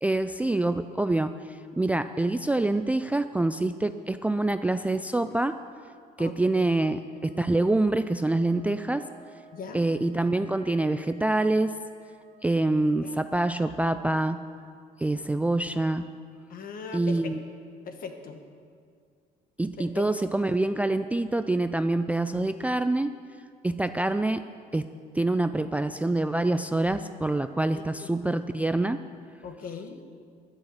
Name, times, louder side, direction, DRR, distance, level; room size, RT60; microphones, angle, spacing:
voice 1, 0.0-5.6 6.2-9.1 9.7-11.8 12.4-14.4 15.0-16.1 16.9-17.4 19.6-23.1 23.6-24.4 24.7-24.9 25.1-29.0, right 2 dB, 10° right, 10 dB, 0.4 m, -26 dB
voice 2, 6.2-6.7 9.5-9.8 13.0-13.2 13.7-13.8 16.5-17.4 17.8-18.4 19.8-20.0 23.7-24.0 27.7-28.1 29.4-30.0, left 5 dB, 55° left, 6 dB, 1.6 m, -40 dB
Wind instrument woodwind instrument, 7.0-12.3, right 5 dB, 90° left, 4.2 m, -55 dB
11.5 x 10.0 x 8.2 m, 2.2 s
cardioid pair, 110°, 17 cm